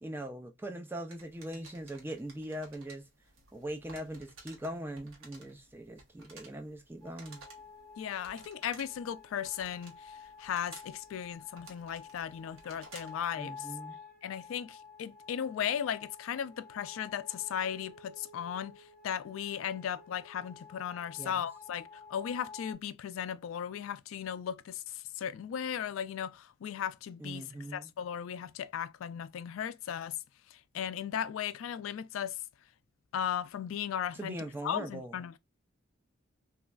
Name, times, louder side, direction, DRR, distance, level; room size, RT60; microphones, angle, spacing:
voice 1, 0.0-3.0 3.5-7.4 13.4-14.0 21.2-21.4 27.2-27.9 34.2-35.2, right 1 dB, 10° right, 0.4 m, -41 dB
sound 1, 1.1-13.2, right 3 dB, 85° right, 0.9 m, -55 dB
sound 2, 7.0-22.7, left 5 dB, 50° right, 1.8 m, -51 dB
voice 2, 8.0-13.7 14.2-30.2 30.5-32.4 33.1-34.4 34.6-35.4, left 9 dB, 80° left, 0.3 m, -36 dB
3.1 x 2.3 x 2.3 m
head